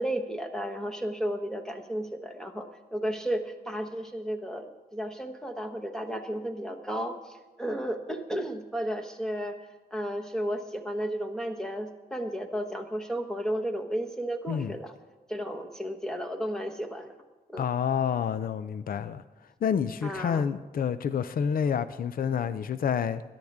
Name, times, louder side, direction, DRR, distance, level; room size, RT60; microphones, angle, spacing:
voice 1, 0.0-9.6 9.9-14.9 15.3-17.1 17.5-17.6 20.0-20.4, equal, 5° left, 1.0 m, -33 dB
voice 2, 17.6-19.2 19.6-23.2, left 7 dB, 65° left, 0.5 m, -28 dB
21.0 x 10.5 x 3.6 m
wide cardioid pair, 160°, 16 cm